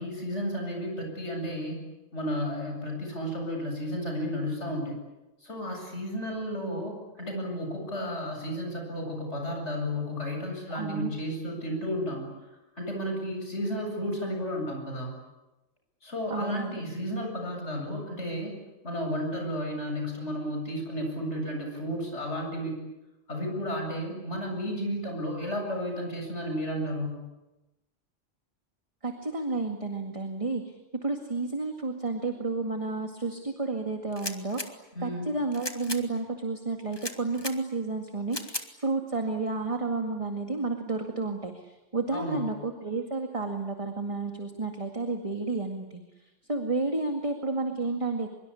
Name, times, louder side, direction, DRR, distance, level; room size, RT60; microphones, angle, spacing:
voice 1, 0.0-1.8 2.1-5.0 5.4-12.3 12.8-15.1 16.0-18.5 18.8-22.8 23.3-27.2 34.9-35.4 42.1-42.4, equal, 65° left, 2 dB, 8.2 m, -33 dB
voice 2, 10.7-11.1 16.3-16.8 29.0-30.7 31.0-34.6 35.0-48.3, right 3 dB, 25° right, 4 dB, 2.1 m, -31 dB
sound 1, 34.1-34.7 35.5-36.0 36.9-37.6 38.3-38.7, left 2 dB, 20° left, 1.9 m, -36 dB
24.0 x 23.5 x 10.0 m, 1.0 s
omnidirectional pair, 1.3 m